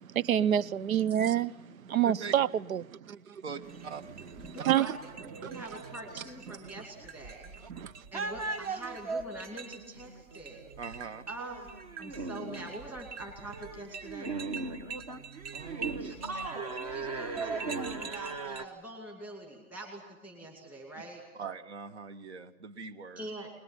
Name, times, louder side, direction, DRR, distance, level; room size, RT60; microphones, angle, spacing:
voice 1, 0.0-3.4 4.5-5.0 5.4-5.6 6.5-6.6 7.7-7.9, right 10 dB, 70° right, 0.9 m, -28 dB
voice 2, 3.4-4.0 10.8-11.2 15.5-16.1 21.3-23.3, right 5 dB, 50° right, 1.8 m, -42 dB
sound 1, 3.6-18.6, right 4 dB, 25° right, 1.3 m, -39 dB
voice 3, 4.4-7.5 8.1-10.6 11.3-11.7 12.0-14.3 16.0-16.7 16.9-21.2 23.2-23.5, right 2 dB, 5° right, 2.5 m, -44 dB
21.5 x 21.0 x 9.9 m
hypercardioid pair, 170°, 42 cm